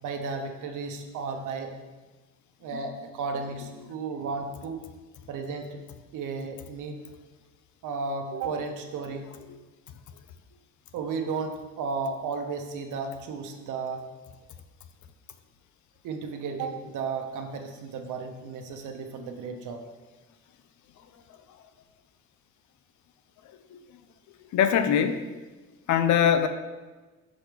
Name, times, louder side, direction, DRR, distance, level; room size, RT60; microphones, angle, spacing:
voice 1, 0.0-1.7 2.6-4.8 5.3-5.8 6.1-7.0 7.8-9.3 10.9-14.1 16.0-19.8, right 4 dB, 85° right, 4 dB, 0.9 m, -34 dB
voice 2, 24.5-25.3 25.9-26.5, left 8 dB, 70° left, 10 dB, 0.6 m, -22 dB
6.2 x 3.5 x 6.0 m, 1.2 s
cardioid pair, 90°, 30 cm